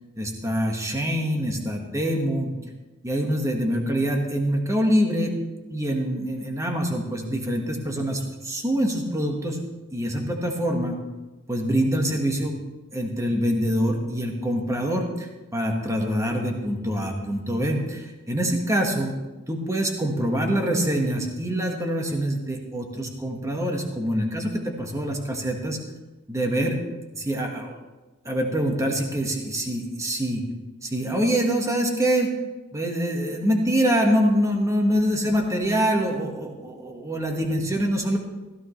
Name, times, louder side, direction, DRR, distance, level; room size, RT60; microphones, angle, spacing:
voice 1, 0.2-2.5 3.0-5.3 5.7-9.6 9.9-11.0 11.5-12.6 12.9-19.2 19.5-25.8 26.3-26.8 27.1-27.8 28.2-30.4 30.8-32.3 32.7-38.2, equal, 15° right, 2 dB, 1.5 m, -25 dB
16.0 x 14.0 x 3.2 m, 1.1 s
head